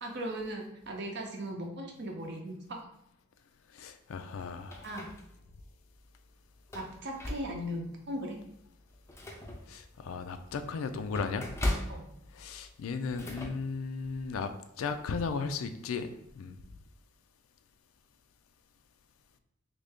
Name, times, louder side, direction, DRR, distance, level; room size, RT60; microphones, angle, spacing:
voice 1, 0.0-2.9 4.8-5.1 6.7-8.4 11.9-12.1, equal, 55° right, 2 dB, 0.7 m, -38 dB
voice 2, 3.7-4.9 9.7-11.5 12.3-14.5 14.8-16.1 16.3-16.6, left 5 dB, 85° left, 9 dB, 0.4 m, -35 dB
sound 1, 4.4-5.6 6.0-6.1 6.6-7.8 8.3-8.4 8.8-13.5, left 1 dB, 15° left, 0.4 m, -38 dB
3.2 x 2.6 x 3.5 m, 0.82 s
head